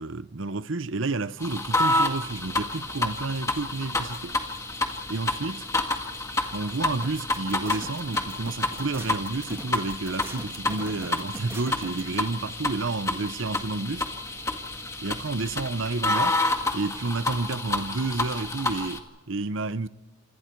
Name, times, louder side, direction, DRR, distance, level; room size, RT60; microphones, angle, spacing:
voice 1, 0.0-4.4 5.1-5.7 6.5-14.1 15.0-16.4 16.7-19.9, right 3 dB, 65° right, 0.8 m, -30 dB
sound 1, 1.4-19.0, left 2 dB, 15° left, 1.8 m, -29 dB
sound 2, 7.0-12.0, right 1 dB, 10° right, 2.0 m, -41 dB
27.5 x 27.0 x 4.6 m
head